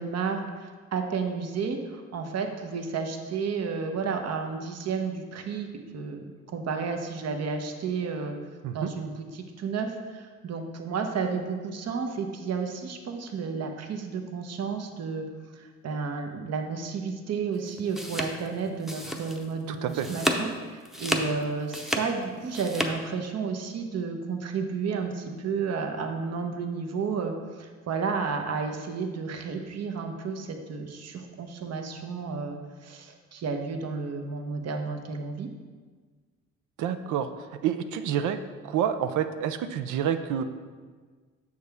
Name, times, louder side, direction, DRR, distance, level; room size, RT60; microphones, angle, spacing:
voice 1, 0.0-5.7 5.9-8.4 8.7-15.2 15.5-35.5, right 5 dB, 60° right, 5 dB, 0.9 m, -32 dB
sound 1, 17.7-19.6 19.9-20.5 20.9-22.9, equal, ahead, 0.7 m, -31 dB
voice 2, 19.7-20.1 36.8-37.3 37.6-38.4 38.6-40.4, right 9 dB, 80° right, 10 dB, 0.5 m, -28 dB
6.7 x 6.4 x 3.5 m, 1.5 s
cardioid pair, 90°, 30 cm